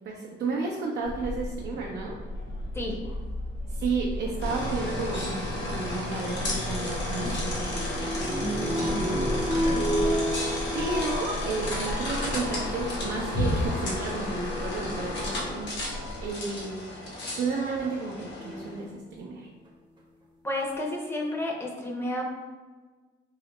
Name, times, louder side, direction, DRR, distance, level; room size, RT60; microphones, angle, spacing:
voice 1, 0.0-2.2 3.7-10.4 10.7-16.8 17.4-19.5, right 4 dB, 60° right, -1 dB, 0.5 m, -33 dB
sound 1, 1.0-16.3, left 1 dB, 85° left, 0.9 m, -36 dB
sound 2, 4.4-18.8, left 1 dB, 65° left, 1.1 m, -33 dB
sound 3, 7.1-12.7 13.4-13.9 15.1-15.2 15.9-16.2 18.4-19.0 19.7-19.8 20.0-20.1, equal, 25° right, 0.7 m, -31 dB
voice 2, 20.4-22.2, left 1 dB, 10° left, -1 dB, 0.7 m, -31 dB
3.7 x 2.1 x 3.0 m, 1.3 s
cardioid pair, 90°, 20 cm